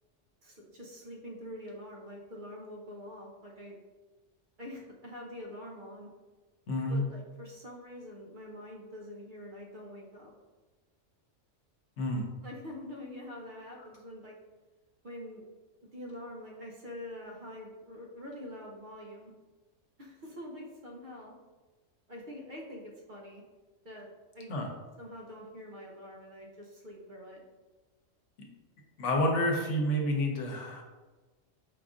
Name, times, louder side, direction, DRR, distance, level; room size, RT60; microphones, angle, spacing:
voice 1, 0.4-3.8 4.6-6.1 6.9-10.3 12.4-14.4 15.0-15.4 15.8-19.3 20.0-21.4 22.1-23.4 23.8-24.1 24.3-24.5 25.0-27.4, left 1 dB, 50° right, -2 dB, 0.7 m, -45 dB
voice 2, 6.7-7.0 12.0-12.2 24.5-24.7 29.0-30.8, left 1 dB, 75° left, 1 dB, 1.1 m, -29 dB
4.8 x 2.5 x 3.6 m, 1.2 s
omnidirectional pair, 1.3 m